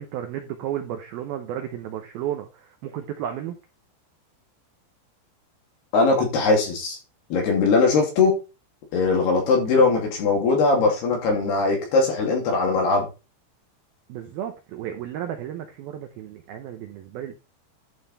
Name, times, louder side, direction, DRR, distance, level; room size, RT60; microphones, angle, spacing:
voice 1, 0.0-3.6 9.8-9.9 14.1-17.4, right 10 dB, 75° right, 5 dB, 2.2 m, -33 dB
voice 2, 5.9-7.0 7.3-8.3 8.9-13.1, left 3 dB, 60° left, 0 dB, 4.6 m, -20 dB
11.5 x 5.5 x 4.3 m, 0.30 s
omnidirectional pair, 5.4 m